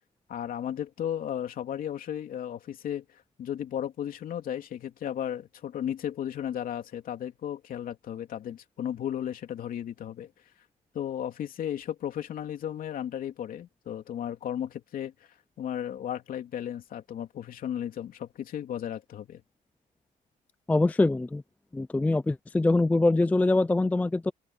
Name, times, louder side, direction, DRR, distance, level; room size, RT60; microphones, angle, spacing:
voice 1, 0.3-10.3 10.9-15.3 15.6-19.4, left 10 dB, 55° left, 2.9 m, -34 dB
voice 2, 20.7-21.4 21.7-24.3, left 2 dB, 10° left, 0.4 m, -24 dB
open air
cardioid pair, 110°, 17 cm